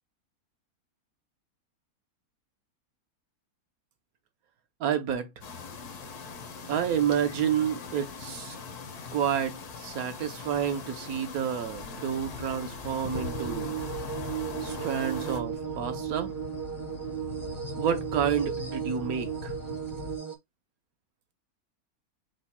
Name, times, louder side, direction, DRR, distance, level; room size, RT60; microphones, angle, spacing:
voice 1, 4.8-5.3 6.7-8.6 9.1-13.8 14.6-16.3 17.8-19.5, right 8 dB, 70° right, 1.2 m, -29 dB
sound 1, 5.4-15.4, left 5 dB, 85° left, 1.5 m, -41 dB
sound 2, 12.1-20.2, left 6 dB, 55° left, 0.7 m, -42 dB
sound 3, 13.1-20.4, right 9 dB, 25° right, 0.4 m, -35 dB
4.8 x 2.2 x 4.1 m
omnidirectional pair, 1.6 m